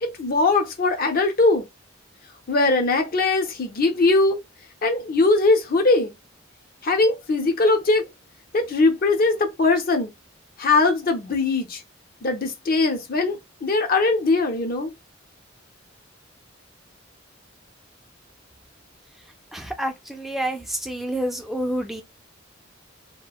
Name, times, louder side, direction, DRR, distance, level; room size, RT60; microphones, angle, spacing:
voice 1, 0.0-1.7 2.5-4.4 4.8-6.1 6.8-8.1 8.5-10.1 10.6-11.8 12.2-14.9, left 3 dB, 45° left, 0.5 m, -21 dB
voice 2, 19.5-22.0, right 1 dB, ahead, 0.3 m, -28 dB
2.8 x 2.1 x 2.3 m
head